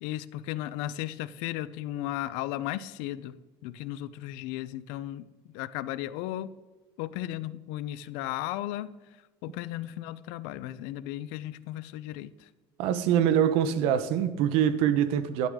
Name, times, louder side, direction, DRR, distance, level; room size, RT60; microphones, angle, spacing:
voice 1, 0.0-3.3 3.6-5.2 5.5-6.5 7.0-8.9 9.4-12.5, left 14 dB, 90° left, 0.5 m, -35 dB
voice 2, 12.8-15.5, right 9 dB, 75° right, 0.9 m, -24 dB
12.0 x 11.5 x 3.7 m
cardioid pair, 155°, 10 cm